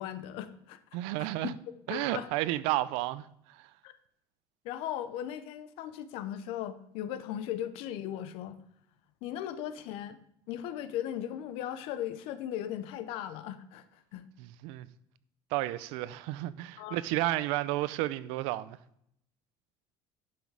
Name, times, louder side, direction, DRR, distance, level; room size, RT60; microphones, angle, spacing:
voice 1, 0.0-0.8 1.2-1.5 1.9-2.3 3.8-3.9 4.6-8.6 9.2-10.2 10.5-13.8 14.1-14.3 16.8-17.0, left 11 dB, 75° left, 0.9 m, -37 dB
voice 2, 0.9-1.5 1.9-3.7 14.4-14.9 15.5-18.8, right 16 dB, 90° right, 0.5 m, -32 dB
11.0 x 6.1 x 4.8 m
cardioid pair, 145°, 10 cm